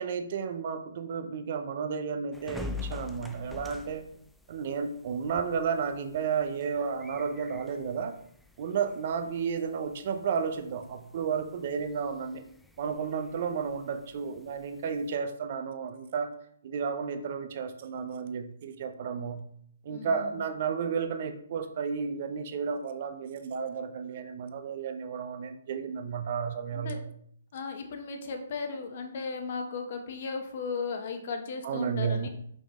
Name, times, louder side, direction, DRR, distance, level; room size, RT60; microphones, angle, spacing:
voice 1, 0.0-4.1 4.5-8.2 8.6-12.4 12.8-16.3 16.6-19.5 19.8-27.0 31.6-32.3, right 6 dB, 45° right, 8 dB, 0.7 m, -32 dB
sound 1, 2.3-15.2, left 4 dB, ahead, 0.3 m, -47 dB
voice 2, 19.9-20.4 26.7-27.0 27.5-32.3, left 4 dB, 50° left, 5 dB, 1.2 m, -36 dB
5.5 x 5.2 x 3.7 m, 0.67 s
hypercardioid pair, 160°, 0 cm